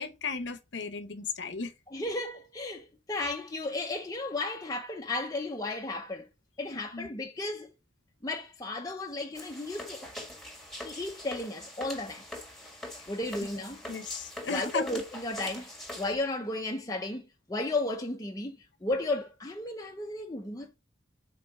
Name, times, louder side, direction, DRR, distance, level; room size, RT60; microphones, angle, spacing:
voice 1, 0.0-1.7 6.7-7.1 13.9-14.9, left 4 dB, 80° left, 0.9 m, -35 dB
voice 2, 1.9-6.2 6.6-7.7 8.2-10.1 10.8-12.3 13.1-13.8 14.5-20.8, left 2 dB, 20° left, 0.8 m, -34 dB
sound 1, 9.3-16.1, left 1 dB, ahead, 1.7 m, -43 dB
5.6 x 4.0 x 5.3 m
head